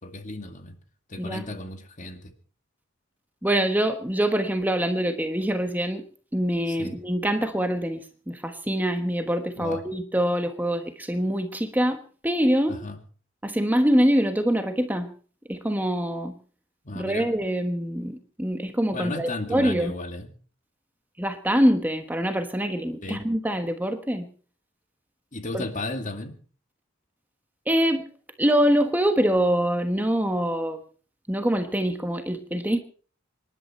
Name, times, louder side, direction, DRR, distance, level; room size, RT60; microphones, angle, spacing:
voice 1, 0.0-0.8 1.1-2.3 6.7-7.0 9.6-9.8 12.7-13.0 16.8-17.3 18.9-20.3 23.0-23.2 25.3-26.3, left 2 dB, 40° left, 6 dB, 2.3 m, -34 dB
voice 2, 3.4-6.0 6.3-12.8 13.4-15.1 15.5-16.3 16.9-19.9 21.2-24.3 25.5-25.6 27.7-28.0 28.4-30.8 31.3-32.8, equal, 10° right, 6 dB, 1.2 m, -24 dB
25.5 x 11.5 x 4.3 m, 0.42 s
head